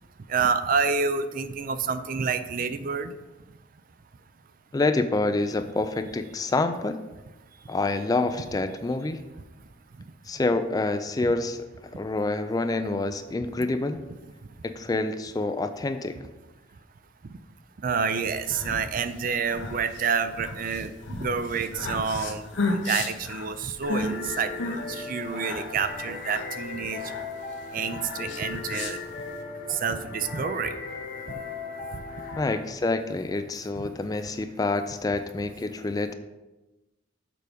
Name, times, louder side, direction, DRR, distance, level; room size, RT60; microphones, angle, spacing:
voice 1, 0.3-3.1 17.8-22.4 22.8-27.0 27.7-29.0 29.7-30.7 33.8-33.9, right 5 dB, 45° right, 10 dB, 0.4 m, -28 dB
voice 2, 4.7-7.0 7.7-9.2 10.3-11.6 12.0-14.0 14.6-16.2 32.4-36.1, left 2 dB, 20° left, 9 dB, 0.3 m, -27 dB
sound 1, 18.2-29.4, left 2 dB, 70° left, 0.9 m, -34 dB
sound 2, 23.8-32.6, left 4 dB, 45° left, 1.1 m, -37 dB
6.8 x 4.8 x 5.1 m, 1.1 s
head